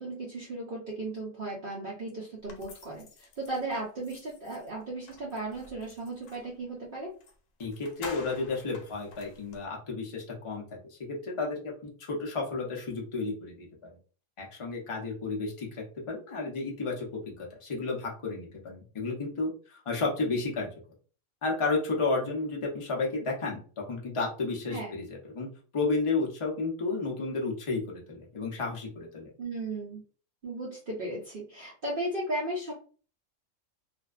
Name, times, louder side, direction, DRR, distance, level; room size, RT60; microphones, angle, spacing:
voice 1, 0.0-7.1 24.7-24.9 29.4-30.0 30.4-32.7, right 2 dB, 55° right, -4 dB, 0.7 m, -36 dB
sound 1, 2.5-6.5 7.2-7.3 7.6-9.6, left 3 dB, 75° left, 1.0 m, -48 dB
voice 2, 7.6-10.6 10.9-14.0 14.4-20.7 21.4-25.5 25.7-29.3, left 3 dB, 40° left, -1 dB, 0.5 m, -32 dB
2.5 x 2.1 x 2.4 m, 0.40 s
omnidirectional pair, 1.4 m